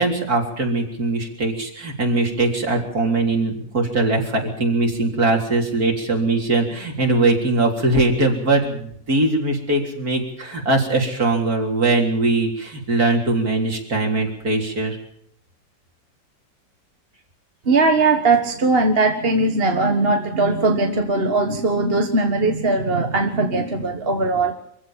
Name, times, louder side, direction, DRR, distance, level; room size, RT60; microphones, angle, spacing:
voice 1, 0.0-15.0, right 2 dB, 50° right, 1 dB, 4.2 m, -21 dB
voice 2, 17.7-24.5, right 3 dB, 35° right, 5 dB, 1.6 m, -19 dB
25.0 x 16.0 x 7.4 m, 0.67 s
omnidirectional pair, 2.1 m